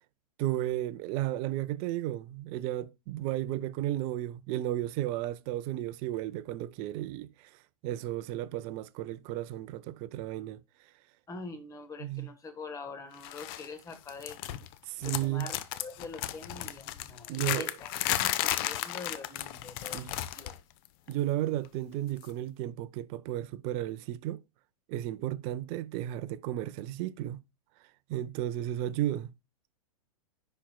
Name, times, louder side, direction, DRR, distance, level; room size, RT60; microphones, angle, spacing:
voice 1, 0.4-7.5 7.8-10.6 12.0-12.3 14.9-15.5 17.3-17.7 19.9-20.1 21.1-24.4 24.9-27.4 28.1-29.3, right 14 dB, 35° right, 0.4 m, -33 dB
voice 2, 11.3-14.4 15.0-17.9 18.2-20.5, left 3 dB, 20° left, 1.2 m, -44 dB
sound 1, 13.2-13.7 13.9-14.7 15.0-20.6 20.9-21.1 22.2-22.3, left 13 dB, 40° left, 0.6 m, -34 dB
10.0 x 4.4 x 2.3 m
figure-of-eight pair, 105°, 18 cm